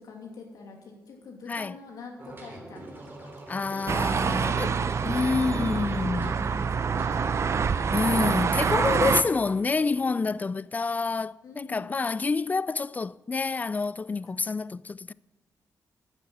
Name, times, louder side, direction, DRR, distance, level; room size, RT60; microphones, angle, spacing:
voice 1, 0.0-3.3 3.9-6.1 6.5-8.0 8.5-9.0 11.4-11.9 14.3-14.8, left 4 dB, 90° left, 2.7 m, -46 dB
sound 1, 2.2-10.5, right 1 dB, 35° right, 3.0 m, -43 dB
voice 2, 3.5-4.7 5.0-6.5 7.9-15.1, left 4 dB, 25° left, 0.3 m, -28 dB
sound 2, 3.9-9.2, right 6 dB, 50° right, 0.6 m, -26 dB
11.5 x 10.0 x 7.6 m
cardioid pair, 95°, 6 cm